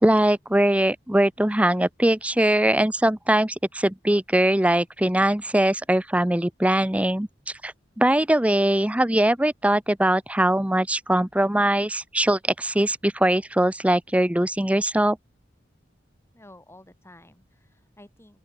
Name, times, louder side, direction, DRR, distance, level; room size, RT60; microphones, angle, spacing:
voice 1, 0.0-7.3 7.6-15.2, right 1 dB, 5° right, 0.8 m, -21 dB
voice 2, 16.3-18.4, left 1 dB, 15° left, 6.1 m, -51 dB
open air
head